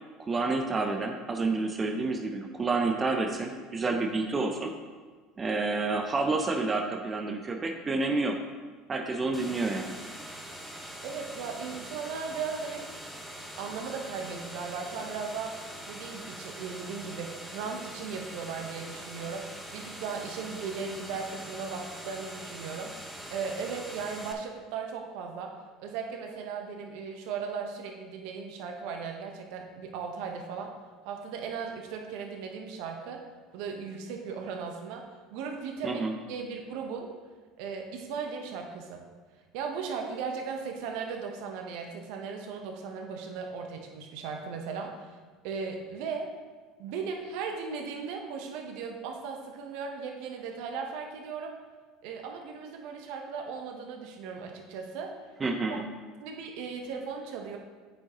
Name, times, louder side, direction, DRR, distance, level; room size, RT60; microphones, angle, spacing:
voice 1, 0.2-4.7 5.4-8.4 8.9-10.0 35.8-36.1 55.4-55.8, right 3 dB, 25° right, 4 dB, 0.7 m, -29 dB
sound 1, 9.3-24.3, right 1 dB, 5° right, 1.2 m, -43 dB
voice 2, 11.0-12.9 13.6-15.6 15.9-22.9 23.3-30.7 31.0-33.2 33.5-37.1 37.6-39.1 39.5-45.2 45.4-46.3 46.8-51.5 52.0-55.1 56.2-57.6, right 5 dB, 70° right, 3 dB, 1.0 m, -37 dB
8.4 x 6.5 x 3.0 m, 1.4 s
hypercardioid pair, 80°, 0 cm